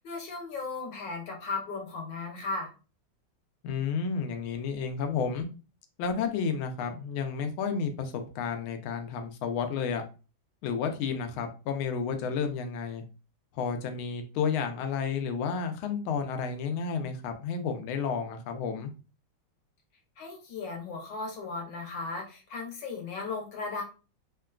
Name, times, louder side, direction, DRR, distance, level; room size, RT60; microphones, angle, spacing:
voice 1, 0.0-2.7 20.2-23.8, left 3 dB, 65° left, 1 dB, 1.5 m, -36 dB
voice 2, 3.6-5.5 6.0-10.0 10.6-13.0 13.5-18.9, left 6 dB, 90° left, 6 dB, 1.4 m, -31 dB
3.6 x 2.2 x 2.3 m, 0.33 s
omnidirectional pair, 2.2 m